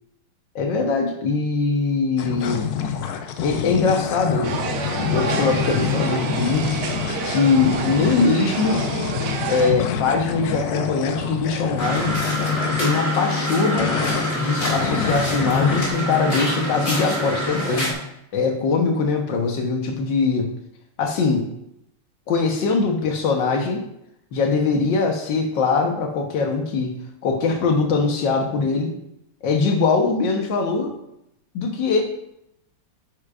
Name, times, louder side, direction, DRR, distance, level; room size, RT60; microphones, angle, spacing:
voice 1, 0.5-2.7 3.4-4.6 5.1-6.8 7.3-8.8 9.5-12.2 12.8-13.9 14.3-17.9 18.3-20.5 21.0-21.5 22.3-23.8 24.3-29.0 29.4-30.9 31.5-32.0, left 4 dB, 60° left, 3 dB, 1.6 m, -22 dB
sound 1, 2.2-13.0 13.7-15.9, left 7 dB, 90° left, 0.8 m, -27 dB
sound 2, 4.4-9.7, right 4 dB, 80° right, 1.7 m, -28 dB
sound 3, 11.8-17.9, left 1 dB, 35° left, 2.8 m, -25 dB
9.4 x 6.5 x 2.5 m, 0.80 s
omnidirectional pair, 2.4 m